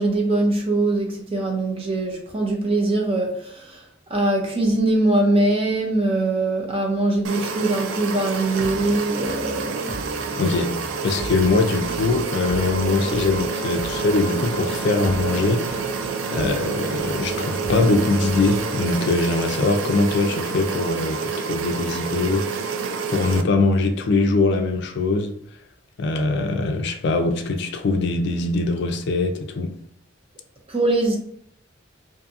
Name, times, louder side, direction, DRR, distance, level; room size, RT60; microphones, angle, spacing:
voice 1, 0.0-3.8 4.1-9.9 30.7-31.2, right 2 dB, 30° right, 0.6 m, -22 dB
sound 1, 7.2-23.4, right 5 dB, 90° right, 0.3 m, -28 dB
sound 2, 8.6-18.9, right 1 dB, 60° right, 0.8 m, -37 dB
voice 2, 10.4-10.8 11.0-15.9 16.3-22.5 23.1-25.3 26.0-29.7, left 3 dB, 60° left, 0.4 m, -22 dB
Bowed string instrument, 12.4-20.6, left 2 dB, 20° left, 0.8 m, -38 dB
2.6 x 2.6 x 2.4 m
head